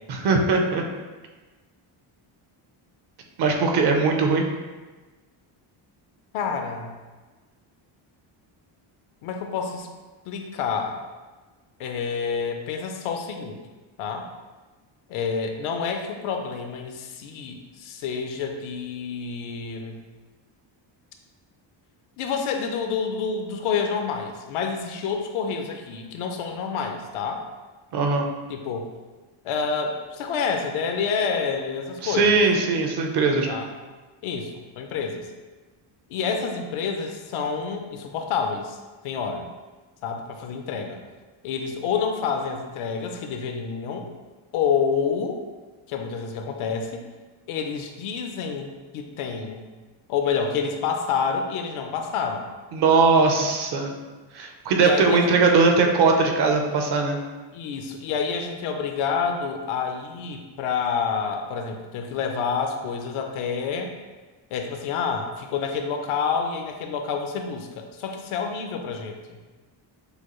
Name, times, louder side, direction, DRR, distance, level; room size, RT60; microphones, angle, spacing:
voice 1, 0.1-0.8 3.4-4.4 27.9-28.3 32.0-33.6 52.7-53.9 54.3-57.2, right 4 dB, 50° right, 3 dB, 0.7 m, -20 dB
voice 2, 6.3-6.9 9.2-9.9 10.3-11.0 11.8-13.6 14.0-14.3 15.1-20.0 22.2-27.4 28.5-28.9 29.4-32.4 33.5-33.7 34.2-35.3 36.1-38.8 39.0-39.4 40.0-41.0 41.4-44.1 44.5-45.4 45.9-47.1 47.5-49.6 50.1-52.4 54.8-55.6 57.5-63.9 64.5-69.4, left 6 dB, 80° left, 4 dB, 0.7 m, -28 dB
6.7 x 2.3 x 3.0 m, 1.3 s
cardioid pair, 140°, 49 cm